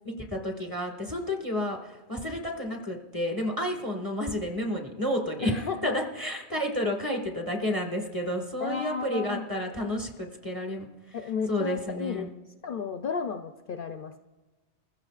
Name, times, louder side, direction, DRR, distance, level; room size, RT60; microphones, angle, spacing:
voice 1, 0.0-11.2 11.5-12.3, left 1 dB, 20° right, 1 dB, 1.5 m, -31 dB
voice 2, 5.4-6.0 8.6-9.5 11.1-12.3 12.6-14.2, left 6 dB, 60° left, 6 dB, 0.7 m, -33 dB
26.5 x 15.0 x 2.4 m, 1.2 s
omnidirectional pair, 1.2 m